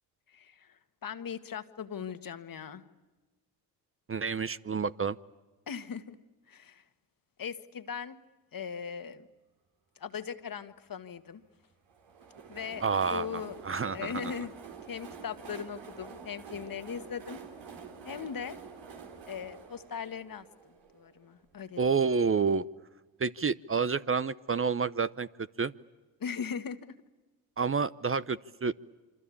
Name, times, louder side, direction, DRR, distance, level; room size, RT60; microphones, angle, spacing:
voice 1, 0.3-2.8 5.7-6.2 6.5-6.8 7.4-8.2 8.5-9.3 10.0-11.4 12.5-12.8 13.1-13.6 13.9-14.5 14.9-17.4 18.0-18.6 19.3-20.5 20.9-22.0 26.2-26.9, left 7 dB, 50° left, 11 dB, 1.8 m, -39 dB
voice 2, 4.1-5.2 12.8-14.2 21.8-22.6 23.2-25.3 25.6-25.7 27.6-28.7, right 5 dB, 30° right, 15 dB, 0.9 m, -29 dB
Train, 11.9-21.5, right 6 dB, 75° right, 4.0 m, -48 dB
27.0 x 25.0 x 8.6 m, 1.2 s
hypercardioid pair, 45°, 43 cm